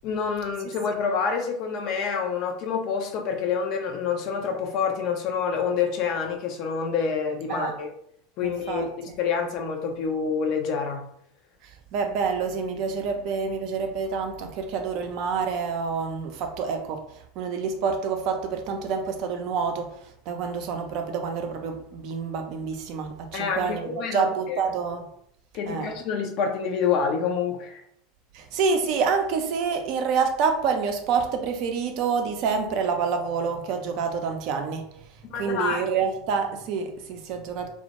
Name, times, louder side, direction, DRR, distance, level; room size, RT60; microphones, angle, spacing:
voice 1, 0.0-7.9 8.4-11.0 23.3-24.6 25.5-27.8 35.3-35.8, left 6 dB, 45° left, 3 dB, 0.4 m, -27 dB
voice 2, 8.4-8.9 11.9-17.0 17.4-25.1 25.7-25.9 28.3-34.9 35.3-37.7, right 5 dB, 50° right, 5 dB, 0.4 m, -27 dB
2.1 x 2.1 x 2.8 m, 0.69 s
figure-of-eight pair, 80°, 0 cm